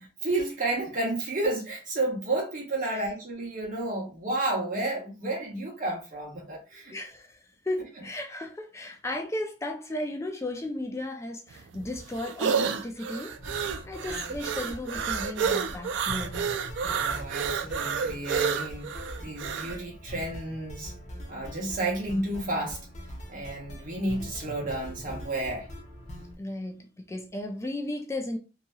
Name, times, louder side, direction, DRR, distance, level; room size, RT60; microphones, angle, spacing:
voice 1, 0.2-6.9 16.8-18.9 19.2-20.9 21.3-22.8 23.3-25.7, right 2 dB, 50° right, 1.2 m, -31 dB
voice 2, 6.9-13.4 13.8-16.6 26.4-28.4, left 1 dB, 15° left, 0.3 m, -35 dB
sound 1, 11.5-19.8, right 6 dB, 80° right, 0.3 m, -30 dB
sound 2, 13.4-26.3, equal, 40° left, 0.7 m, -43 dB
3.0 x 2.7 x 2.2 m
head